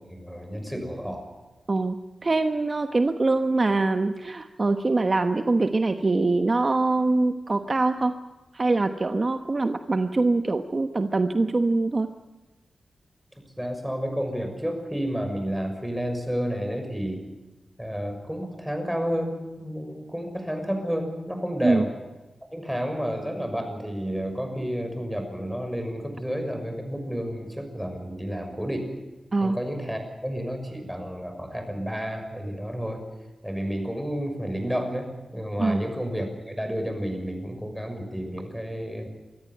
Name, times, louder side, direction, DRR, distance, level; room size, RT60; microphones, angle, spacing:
voice 1, 0.1-1.3 13.6-17.2 17.8-21.9 22.5-28.9 29.4-33.0 33.4-39.1, equal, 5° right, 5 dB, 6.2 m, -31 dB
voice 2, 2.2-8.1 8.5-12.1 21.6-21.8 29.3-29.6 35.6-35.8, right 3 dB, 40° right, 8 dB, 1.1 m, -23 dB
25.0 x 14.0 x 9.3 m, 1.1 s
cardioid pair, 75°, 0 cm